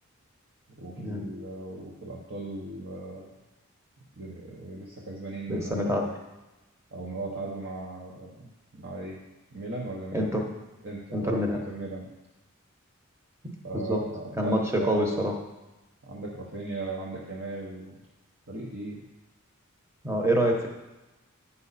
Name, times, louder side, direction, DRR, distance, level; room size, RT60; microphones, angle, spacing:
voice 1, 0.8-3.3 4.2-6.2 6.9-9.2 9.5-10.3 10.8-12.1 13.6-15.3 16.0-18.0 18.5-19.1, right 2 dB, 55° right, -3 dB, 1.1 m, -37 dB
voice 2, 5.5-6.1 10.1-10.4 11.1-11.6 13.7-14.0 14.4-15.3 20.0-20.7, equal, 15° right, 1 dB, 1.0 m, -26 dB
9.4 x 5.6 x 4.1 m, 1.1 s
head